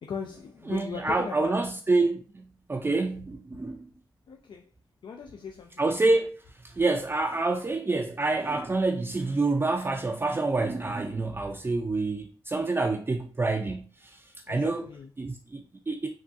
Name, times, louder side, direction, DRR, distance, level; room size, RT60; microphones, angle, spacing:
voice 1, 0.0-1.7 4.3-4.7 5.0-5.8 14.5-15.1, left 6 dB, 65° left, 0.4 m, -39 dB
voice 2, 0.7-2.4 2.7-3.9 5.8-6.4 6.8-14.2 14.5-14.9 15.2-16.1, right 3 dB, 25° right, 0.4 m, -27 dB
3.6 x 2.3 x 2.5 m
cardioid pair, 50°, 9 cm